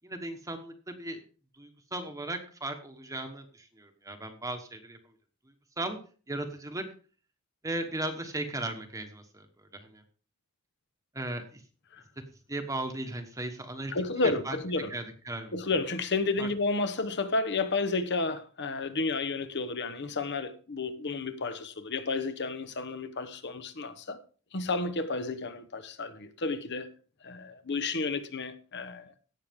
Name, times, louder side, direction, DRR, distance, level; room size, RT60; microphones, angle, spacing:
voice 1, 0.0-1.2 1.6-5.0 5.8-6.0 6.3-6.8 7.6-9.4 9.8-10.0 11.1-11.6 12.5-13.9 14.2-14.6 14.9-15.5 16.4-16.5, right 2 dB, 15° right, 1.2 m, -36 dB
voice 2, 13.9-14.9 15.5-24.2 24.5-26.9 27.2-29.1, left 3 dB, 55° left, 1.0 m, -31 dB
17.0 x 6.4 x 3.6 m
head